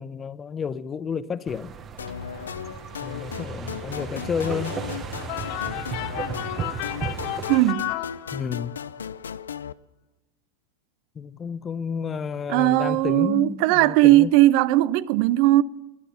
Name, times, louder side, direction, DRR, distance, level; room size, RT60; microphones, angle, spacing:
voice 1, 0.0-1.7 3.0-4.8 8.3-8.8 11.2-14.3, left 6 dB, 25° left, 0.7 m, -31 dB
sound 1, 1.5-7.7, right 6 dB, 30° right, 1.1 m, -35 dB
sound 2, 2.0-9.7, left 8 dB, 90° left, 0.5 m, -36 dB
sound 3, 5.3-8.8, left 17 dB, 55° left, 0.8 m, -33 dB
voice 2, 7.5-7.9 12.5-15.6, right 16 dB, 55° right, 0.5 m, -18 dB
20.5 x 10.0 x 5.7 m
hypercardioid pair, 105°, 0 cm